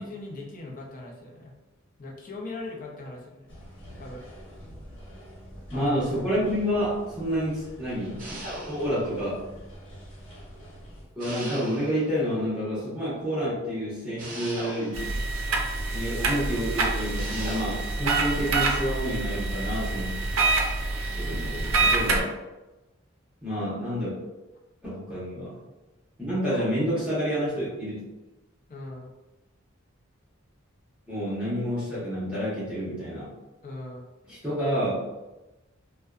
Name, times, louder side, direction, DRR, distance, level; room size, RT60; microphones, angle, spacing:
voice 1, 0.0-1.5 2.0-3.6 4.0-4.3 5.7-6.0 26.5-26.7 28.7-29.1 33.6-34.0, left 2 dB, 40° left, -2 dB, 0.5 m, -40 dB
sound 1, 3.5-11.1, equal, 65° left, 1.1 m, -46 dB
voice 2, 5.7-8.3 8.7-9.4 11.2-15.1 15.9-20.1 21.1-22.3 23.4-24.1 24.8-25.6 26.2-28.0 31.1-33.3 34.3-35.0, equal, 5° right, -11 dB, 0.8 m, -29 dB
sound 2, 8.2-9.1 11.2-12.2 14.2-15.2 17.2-17.9, right 1 dB, 40° right, 0.6 m, -38 dB
sound 3, 14.9-22.2, right 3 dB, 85° right, 0.4 m, -26 dB
2.6 x 2.1 x 2.3 m, 1.1 s
head